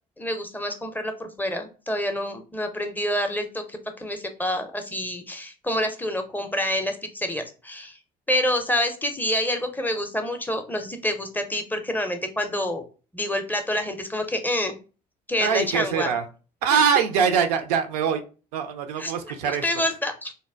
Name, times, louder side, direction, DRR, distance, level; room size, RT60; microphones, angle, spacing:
voice 1, 0.2-8.0 8.3-12.8 13.1-14.8 15.3-16.1 19.0-20.3, left 1 dB, 10° left, 6 dB, 0.4 m, -27 dB
voice 2, 15.4-16.2 16.6-18.2 18.5-19.6, right 6 dB, 65° right, 7 dB, 0.4 m, -23 dB
4.0 x 2.1 x 2.2 m, 0.34 s
figure-of-eight pair, 50°, 21 cm